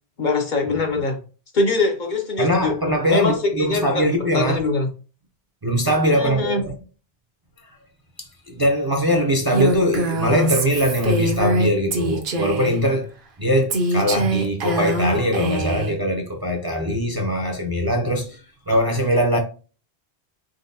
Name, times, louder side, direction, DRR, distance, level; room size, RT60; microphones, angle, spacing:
voice 1, 0.2-1.2 1.5-2.8 3.1-4.9 6.1-6.6, left 3 dB, 50° left, 0.9 m, -23 dB
voice 2, 2.4-4.6 5.6-6.7 8.2-13.1 13.4-18.4 18.7-19.4, equal, 30° right, 0.5 m, -21 dB
Female speech woman speaking, 9.5-12.8 13.7-15.9, right 2 dB, 60° right, 0.8 m, -23 dB
4.0 x 3.8 x 2.7 m
omnidirectional pair, 1.1 m